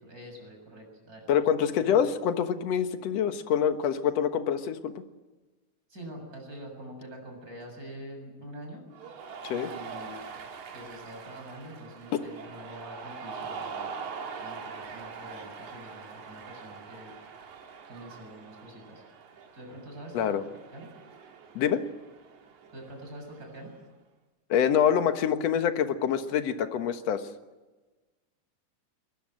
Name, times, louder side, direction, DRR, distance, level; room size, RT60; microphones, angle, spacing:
voice 1, 0.0-1.2 1.8-2.0 5.9-8.8 9.5-10.3 10.7-13.9 14.4-17.2 17.9-19.0 19.5-20.4 20.7-20.9 22.7-23.7, equal, 25° right, 2 dB, 7.6 m, -45 dB
voice 2, 1.3-5.0 9.4-9.7 20.1-20.4 21.6-21.8 24.5-27.2, left 8 dB, 60° left, 8 dB, 2.3 m, -26 dB
Cheering, 8.9-23.8, right 5 dB, 70° right, 3.4 m, -43 dB
22.5 x 21.0 x 7.7 m, 1.2 s
omnidirectional pair, 3.5 m